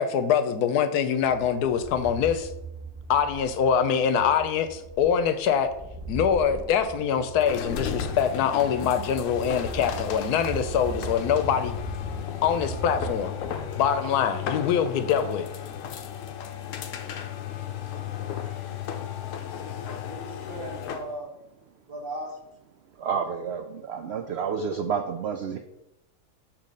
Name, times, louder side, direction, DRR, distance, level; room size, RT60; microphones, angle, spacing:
voice 1, 0.0-2.5 3.1-5.7 6.1-11.7 12.4-13.3 13.8-15.5, left 8 dB, 85° left, 10 dB, 1.2 m, -24 dB
sound 1, 1.2-14.1, right 4 dB, 10° right, 0.4 m, -40 dB
sound 2, 7.4-21.1, left 9 dB, 65° left, 0.9 m, -35 dB
voice 2, 19.8-21.3 21.8-22.4, right 1 dB, 40° right, 0 dB, 1.3 m, -38 dB
voice 3, 23.0-25.6, right 6 dB, 75° right, 6 dB, 0.6 m, -30 dB
6.9 x 3.1 x 5.3 m, 0.89 s
omnidirectional pair, 1.6 m